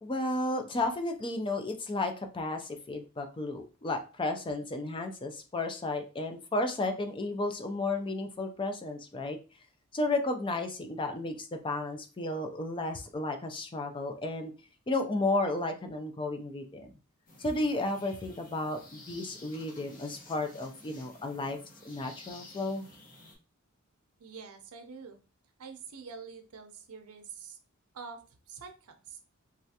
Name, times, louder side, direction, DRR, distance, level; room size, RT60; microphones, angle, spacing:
voice 1, 0.0-9.4 9.9-14.5 14.9-16.9 17.4-21.6 21.8-22.9, left 2 dB, 25° left, 5 dB, 0.4 m, -33 dB
sound 1, 17.3-23.4, left 2 dB, 40° left, 1.0 m, -53 dB
voice 2, 24.2-25.2 25.6-27.6 27.9-29.2, right 5 dB, 80° right, 7 dB, 0.6 m, -46 dB
3.2 x 2.4 x 2.7 m, 0.33 s
head